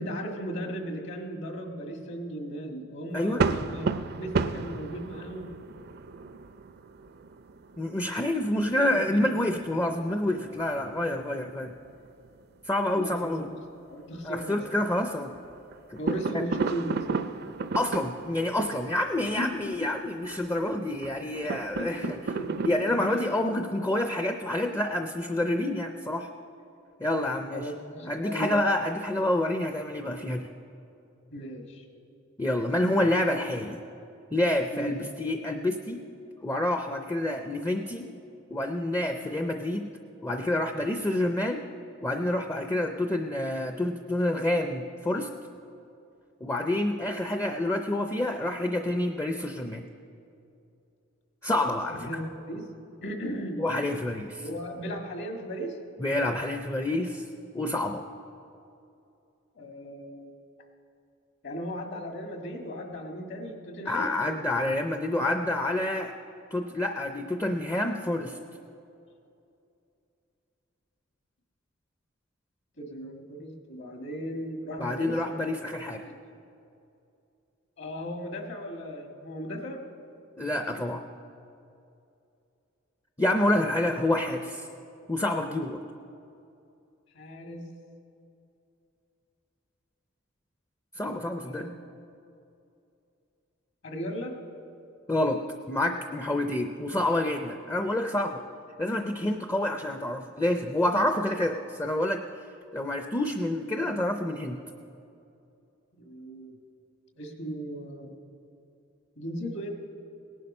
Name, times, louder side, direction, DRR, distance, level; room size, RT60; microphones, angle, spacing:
voice 1, 0.0-3.9 4.2-5.5 8.7-9.3 12.9-13.4 13.9-14.6 16.0-17.0 19.2-19.7 21.8-23.3 24.1-24.2 27.5-28.6 31.3-31.8 34.7-35.0 51.9-52.7 53.0-53.8 54.4-55.8 59.5-60.4 61.4-64.1 72.8-75.5 76.3-76.4 77.8-79.8 87.1-87.6 91.4-91.7 93.8-94.3 105.9-106.5 107.2-108.1 109.2-109.7, equal, 60° left, 3 dB, 1.8 m, -36 dB
voice 2, 3.1-3.4 7.8-11.7 12.6-13.5 14.2-15.3 15.9-16.0 16.3-16.4 17.7-22.2 22.6-26.3 27.0-27.7 28.1-30.5 32.4-33.8 34.3-36.0 36.4-38.1 38.5-39.9 40.2-41.6 42.0-45.3 46.4-49.9 51.4-52.1 53.6-54.4 56.0-57.2 57.5-58.0 63.9-66.1 66.5-68.4 74.8-76.1 80.4-81.0 83.2-84.7 85.1-85.8 91.0-91.7 95.1-95.4 95.7-98.4 98.8-102.2 102.7-104.6, left 1 dB, 15° left, 6 dB, 0.5 m, -28 dB
sound 1, 3.1-12.4 12.6-12.7 13.1-13.2 14.0-15.0 15.3-22.7, right 4 dB, 50° right, 0.5 m, -34 dB
18.0 x 11.0 x 5.4 m, 2.7 s
head